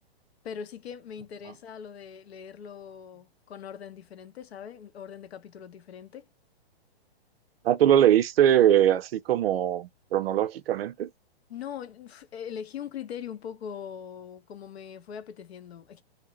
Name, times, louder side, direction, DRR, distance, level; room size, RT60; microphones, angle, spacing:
voice 1, 0.4-6.3 11.5-16.0, left 8 dB, 80° left, 0.8 m, -41 dB
voice 2, 7.6-11.1, right 11 dB, 70° right, 0.5 m, -22 dB
2.7 x 2.0 x 2.9 m
hypercardioid pair, 155°, 31 cm